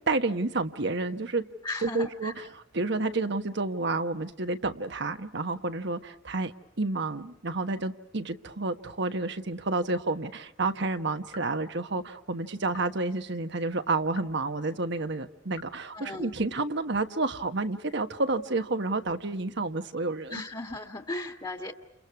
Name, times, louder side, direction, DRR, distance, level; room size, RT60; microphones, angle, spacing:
voice 1, 0.1-1.5 1.8-6.5 6.8-20.4, right 3 dB, 65° right, 8 dB, 1.3 m, -30 dB
voice 2, 1.6-2.5 15.9-16.3 20.3-21.7, left 2 dB, 25° left, 5 dB, 1.8 m, -36 dB
sound 1, 11.3-11.6 12.7-13.0 14.1-14.5 15.5-15.8, left 4 dB, 80° left, 3.4 m, -49 dB
29.5 x 29.5 x 4.8 m, 0.85 s
head